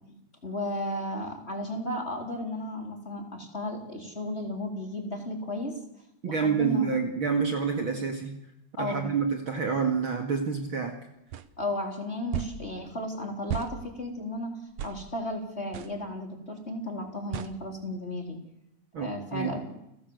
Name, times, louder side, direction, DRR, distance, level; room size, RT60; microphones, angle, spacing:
voice 1, 0.4-5.8 6.2-6.9 8.8-9.1 11.6-14.6 14.8-18.4 19.0-19.6, left 1 dB, 20° left, 2 dB, 4.1 m, -34 dB
voice 2, 6.2-8.3 8.8-11.0 18.9-19.5, right 5 dB, 45° right, 4 dB, 2.7 m, -28 dB
sound 1, 11.3-11.5 12.3-12.6 13.5-13.7 14.8-15.0 15.7-15.9 17.3-17.5, right 10 dB, 65° right, 2.2 m, -33 dB
29.5 x 17.5 x 8.1 m, 0.84 s
omnidirectional pair, 3.5 m